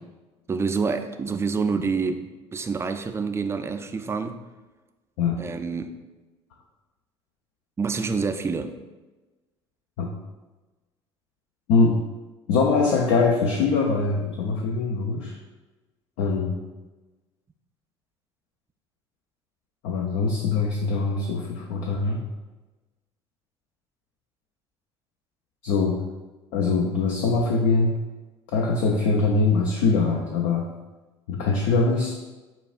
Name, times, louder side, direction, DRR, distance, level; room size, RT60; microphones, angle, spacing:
voice 1, 0.5-4.4 5.4-5.9 7.8-8.7, right 5 dB, 15° right, 7 dB, 0.3 m, -27 dB
voice 2, 12.5-15.4 16.2-16.6 19.8-22.2 25.6-26.0 26.5-28.0 28.5-30.7 31.3-32.2, left 4 dB, 60° left, 1 dB, 0.5 m, -22 dB
6.8 x 2.3 x 2.4 m, 1.2 s
figure-of-eight pair, 60°, 15 cm